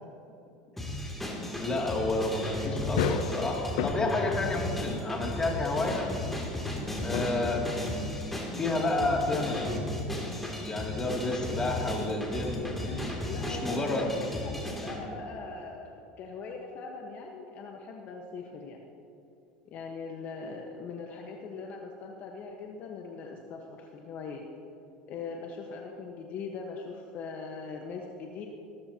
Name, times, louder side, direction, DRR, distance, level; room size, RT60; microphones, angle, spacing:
sound 1, 0.8-15.0, left 1 dB, 5° left, 2.8 m, -35 dB
sound 2, 1.3-9.0, left 9 dB, 75° left, 0.6 m, -38 dB
voice 1, 1.6-6.1 7.0-7.7 8.5-9.9 10.6-12.7 13.4-14.1, left 2 dB, 20° left, -1 dB, 2.6 m, -30 dB
voice 2, 12.8-18.8 19.6-24.4 25.1-28.5, left 4 dB, 50° left, 1 dB, 1.3 m, -41 dB
20.5 x 13.5 x 2.9 m, 2.9 s
supercardioid pair, 110°, 4 cm